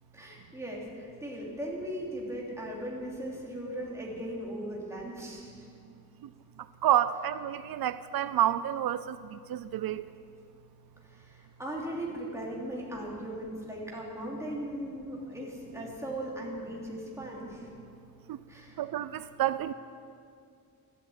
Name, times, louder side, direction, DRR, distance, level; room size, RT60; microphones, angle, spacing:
voice 1, 0.1-5.7 11.1-17.7 18.5-18.8, right 1 dB, 10° right, -3 dB, 2.8 m, -38 dB
voice 2, 6.8-10.0 18.3-18.4 18.8-19.7, right 11 dB, 85° right, 14 dB, 0.5 m, -29 dB
13.0 x 12.5 x 8.6 m, 2.4 s
wide cardioid pair, 175°, 35 cm